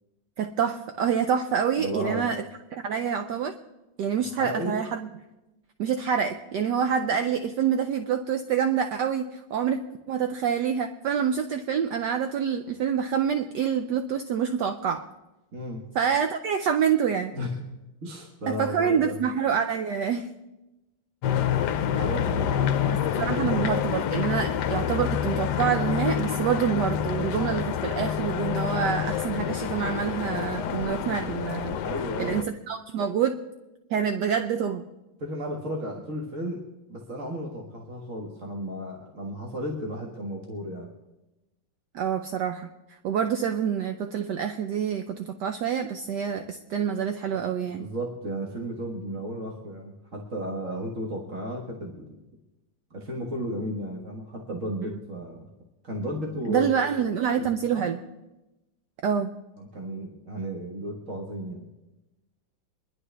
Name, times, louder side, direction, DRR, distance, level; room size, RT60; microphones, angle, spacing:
voice 1, 0.4-2.4 2.7-3.5 4.0-5.1 5.8-9.8 10.1-15.1 15.9-17.3 18.5-20.3 22.9-31.8 32.2-33.4 33.9-34.8 41.9-42.7 43.0-47.9 56.5-58.0 59.0-59.3, right 7 dB, 70° right, 7 dB, 1.2 m, -27 dB
voice 2, 1.8-2.3 4.3-4.8 15.5-15.8 17.3-17.5 18.0-19.3 22.0-22.5 22.8-23.7 31.8-32.5 35.2-36.6 36.9-40.9 47.8-52.2 52.9-55.5 55.8-57.5 57.7-57.8 59.6-61.7, equal, 45° right, -1 dB, 1.7 m, -34 dB
sound 1, 21.2-32.4, left 9 dB, 70° left, 1.1 m, -27 dB
24.5 x 11.5 x 3.4 m, 1.0 s
omnidirectional pair, 2.1 m